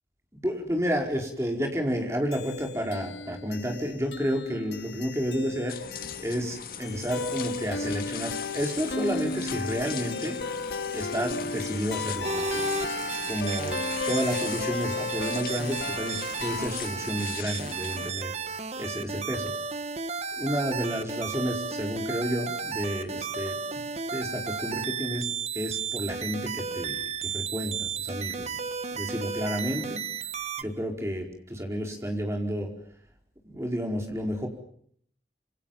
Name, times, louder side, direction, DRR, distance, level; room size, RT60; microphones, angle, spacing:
voice 1, 0.4-10.4 10.9-12.7 13.3-19.5 20.3-23.8 24.1-25.3 25.5-28.6 28.9-30.0 30.6-32.7 33.4-34.5, equal, 15° right, 2 dB, 4.8 m, -31 dB
sound 1, 2.3-16.7, left 4 dB, 80° left, 1.9 m, -35 dB
sound 2, 5.7-18.1, left 8 dB, 55° left, 1.8 m, -40 dB
sound 3, 12.2-30.6, right 5 dB, 40° right, 1.4 m, -33 dB
27.5 x 27.5 x 7.4 m, 0.65 s
head